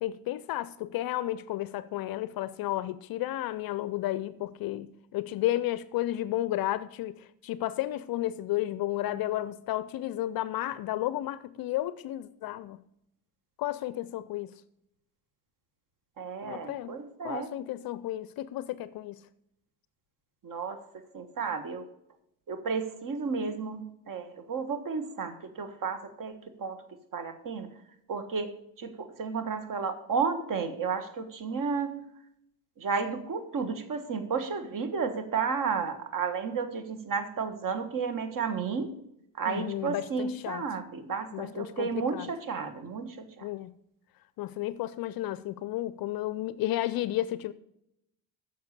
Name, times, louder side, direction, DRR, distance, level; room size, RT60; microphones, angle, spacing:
voice 1, 0.0-12.8 13.6-14.5 16.4-16.9 17.2-19.2 39.5-40.6 41.3-42.3 43.4-43.7 44.4-47.5, left 14 dB, 45° left, 0.5 m, -32 dB
voice 2, 16.2-17.5 20.4-20.8 21.1-21.9 22.5-26.3 26.6-26.8 27.1-27.7 28.1-28.5 28.8-31.9 32.8-38.9 39.4-43.5, right 5 dB, 40° right, 1.5 m, -32 dB
9.5 x 6.6 x 6.7 m
supercardioid pair, 85°, 50 cm